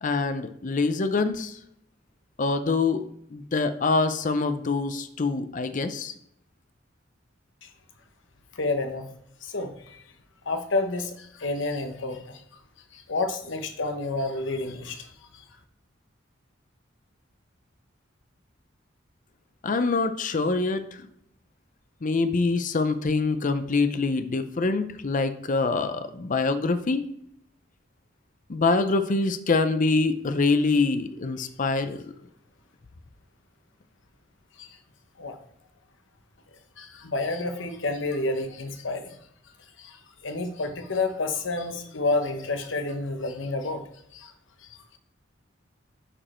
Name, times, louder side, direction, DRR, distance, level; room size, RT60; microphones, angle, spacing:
voice 1, 0.0-1.6 2.4-3.0 3.3-6.1 19.6-20.8 22.0-27.1 28.5-32.0, left 3 dB, 45° left, 10 dB, 0.5 m, -25 dB
voice 2, 8.5-9.1 9.4-10.0 10.5-12.4 12.9-15.4 34.6-34.7 35.2-35.4 36.8-39.2 39.8-43.8 44.1-44.3, left 3 dB, 75° left, 7 dB, 1.0 m, -30 dB
8.7 x 5.1 x 4.4 m, 0.72 s
head